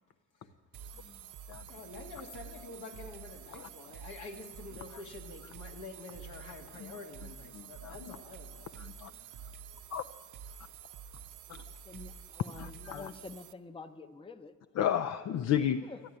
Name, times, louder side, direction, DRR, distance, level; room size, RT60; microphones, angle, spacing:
sound 1, 0.7-13.5, right 7 dB, 80° right, 0.7 m, -49 dB
voice 1, 0.9-1.3 11.6-14.5 15.8-16.0, left 3 dB, 15° left, 10 dB, 0.7 m, -48 dB
voice 2, 1.7-9.5, left 3 dB, 85° left, 2 dB, 2.1 m, -48 dB
voice 3, 7.5-8.1 8.8-9.1 9.9-10.0 11.5-11.6 12.6-13.1 14.8-15.9, left 9 dB, 60° left, 12 dB, 0.5 m, -33 dB
13.0 x 10.5 x 9.8 m, 1.5 s
cardioid pair, 90°, 30 cm